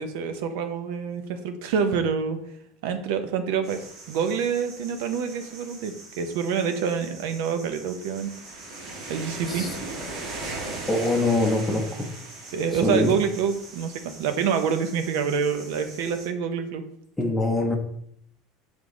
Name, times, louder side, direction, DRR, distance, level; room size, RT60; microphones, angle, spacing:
voice 1, 0.0-2.4 2.8-8.3 9.1-9.7 11.7-11.8 12.5-16.8, right 6 dB, 70° right, 8 dB, 0.8 m, -27 dB
sound 1, 3.6-16.3, right 2 dB, 50° right, 1.6 m, -40 dB
voice 2, 10.9-12.1 12.8-13.1 17.2-17.7, left 2 dB, 5° left, -1 dB, 0.7 m, -23 dB
6.8 x 3.6 x 3.8 m, 0.70 s
cardioid pair, 170°, 0 cm